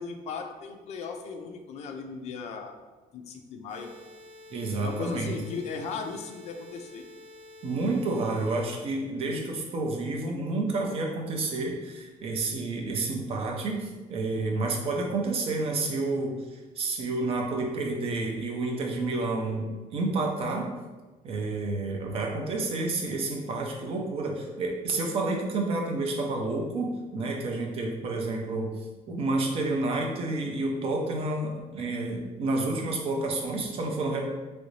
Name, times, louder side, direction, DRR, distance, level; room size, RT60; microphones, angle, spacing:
voice 1, 0.0-2.7 3.1-3.9 4.8-7.0, left 5 dB, 50° left, 4 dB, 0.4 m, -37 dB
sound 1, 3.7-8.7, left 1 dB, 60° right, 1.3 m, -49 dB
voice 2, 4.5-5.3 7.6-20.7 21.2-28.7 29.1-34.2, right 2 dB, 45° right, 1 dB, 0.5 m, -30 dB
3.1 x 2.6 x 3.1 m, 1.2 s
cardioid pair, 180°, 14 cm